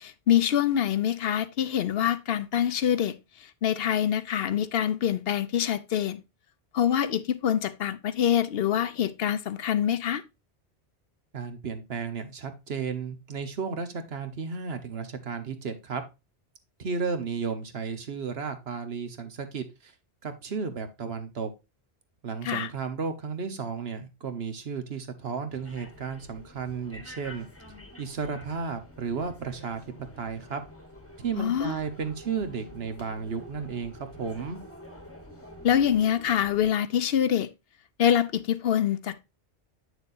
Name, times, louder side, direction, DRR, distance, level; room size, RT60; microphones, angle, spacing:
voice 1, 0.0-6.2 6.7-10.2 22.4-22.7 31.3-31.8 35.6-37.5 38.0-39.1, left 9 dB, 65° left, 0.8 m, -25 dB
voice 2, 11.3-16.0 16.8-19.9 20.2-21.5 22.2-27.5 28.0-29.8 30.2-30.6 31.2-34.6, right 5 dB, 70° right, 1.3 m, -33 dB
sound 1, 25.5-36.7, left 1 dB, 15° left, 1.1 m, -48 dB
8.1 x 6.5 x 2.5 m
omnidirectional pair, 1.1 m